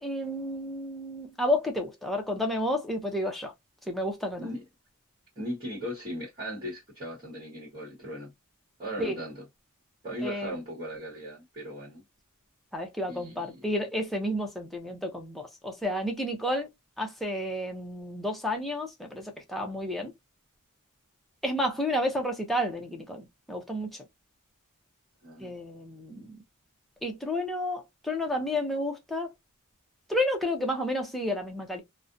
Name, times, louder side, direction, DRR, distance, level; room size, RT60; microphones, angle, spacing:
voice 1, 0.0-3.5 3.9-4.4 9.0-9.2 10.2-10.5 12.7-16.7 17.0-20.1 21.4-23.9 25.4-26.4 27.0-29.3 30.1-31.8, left 1 dB, ahead, 0.5 m, -31 dB
voice 2, 5.4-8.3 8.8-9.5 10.0-12.0 13.1-13.7 25.2-25.5, equal, 25° right, 1.1 m, -38 dB
2.4 x 2.1 x 2.5 m
head